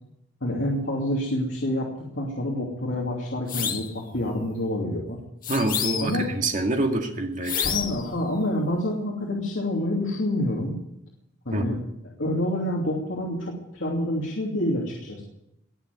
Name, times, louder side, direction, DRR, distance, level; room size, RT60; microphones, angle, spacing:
voice 1, 0.4-5.2 6.0-6.3 7.6-10.8 11.4-11.8 12.2-15.2, left 1 dB, 75° left, -3 dB, 2.9 m, -27 dB
sound 1, 3.5-3.9 5.4-6.3 7.4-8.1, left 8 dB, 45° left, 1.6 m, -29 dB
voice 2, 5.5-7.8 11.5-11.8, right 2 dB, 40° right, 3 dB, 2.1 m, -26 dB
20.0 x 7.1 x 9.7 m, 0.83 s
head